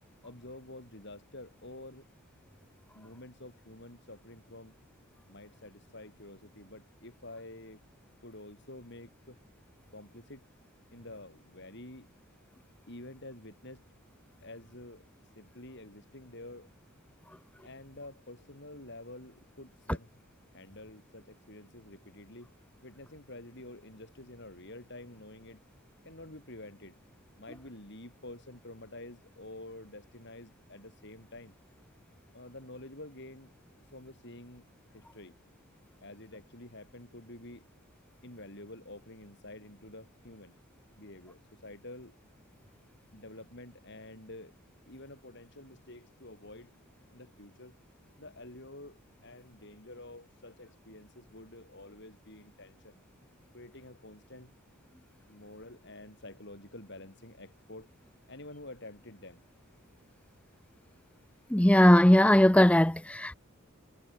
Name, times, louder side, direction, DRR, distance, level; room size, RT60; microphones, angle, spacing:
voice 1, 0.2-2.1 2.9-4.7 5.3-7.8 8.2-9.4 9.9-10.5 10.9-12.1 12.9-13.8 14.4-15.0 15.4-16.7 17.6-20.2 20.5-22.5 22.8-25.6 26.0-27.0 27.4-31.5 32.3-33.5 33.9-34.6 34.9-35.3 36.0-37.6 38.2-40.5 41.0-42.2 43.1-44.5 44.9-46.7 47.1-47.8 48.2-53.0 53.5-54.5 55.3-57.9 58.3-59.4, left 1 dB, 55° left, 7.4 m, -49 dB
voice 2, 61.5-63.3, left 1 dB, 5° left, 0.6 m, -20 dB
head